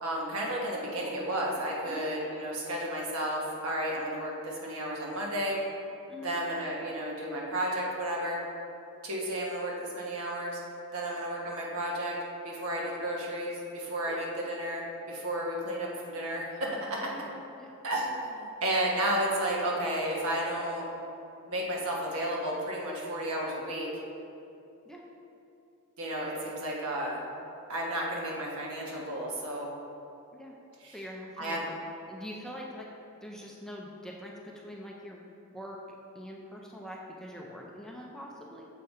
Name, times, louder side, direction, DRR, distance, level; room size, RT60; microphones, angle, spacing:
voice 1, 0.0-5.6 6.2-8.4 9.0-10.6 10.9-12.2 12.4-17.0 17.8-20.9 21.5-23.9 26.0-27.2 27.7-29.7 30.8-31.0 31.4-31.6, right 1 dB, 75° right, -3 dB, 1.3 m, -32 dB
voice 2, 6.1-6.4 14.1-14.2 17.0-17.2 17.6-17.7 24.8-25.0 30.3-30.6 30.9-31.7 32.1-32.9 33.2-35.2 35.5-35.8 36.1-38.7, equal, 5° left, -2 dB, 0.5 m, -44 dB
6.6 x 5.1 x 4.2 m, 2.7 s
head